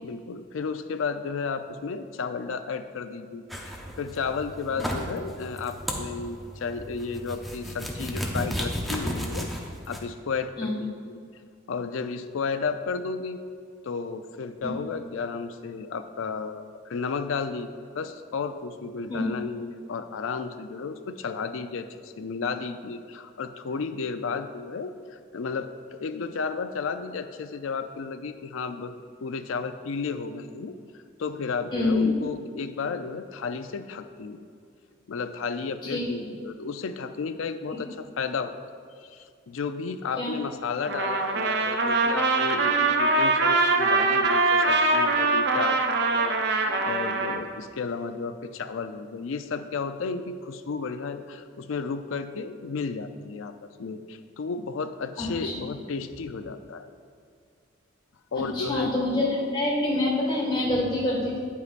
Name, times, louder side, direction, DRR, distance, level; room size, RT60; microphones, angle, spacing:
voice 1, 0.0-9.5 9.9-11.2 11.7-13.4 13.8-17.7 17.9-28.9 29.2-30.7 31.2-34.4 35.1-38.6 39.0-45.8 46.1-53.5 53.8-56.9 58.3-58.9, left 5 dB, 80° left, 9 dB, 0.4 m, -33 dB
sound 1, 3.5-10.0, equal, ahead, 0.6 m, -34 dB
voice 2, 31.7-32.1 35.9-36.0 40.2-40.4 55.2-55.5 58.4-61.4, left 2 dB, 20° left, -5 dB, 1.7 m, -26 dB
Trumpet, 40.9-47.4, right 3 dB, 55° right, 0.5 m, -23 dB
9.4 x 8.2 x 2.5 m, 2.2 s
head